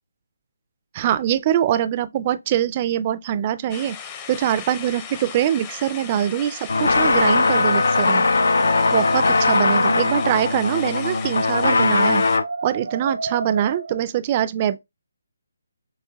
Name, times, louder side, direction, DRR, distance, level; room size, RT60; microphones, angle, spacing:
voice 1, 0.9-4.0 4.3-8.3 8.9-12.2 12.6-14.8, right 11 dB, 30° right, 0.3 m, -23 dB
sound 1, 3.7-12.4, left 7 dB, 25° left, 0.5 m, -37 dB
sound 2, 6.7-12.4, left 3 dB, 70° left, 0.3 m, -19 dB
sound 3, 8.3-14.0, right 3 dB, 75° right, 0.7 m, -33 dB
6.4 x 2.6 x 2.2 m
figure-of-eight pair, 150°, 0 cm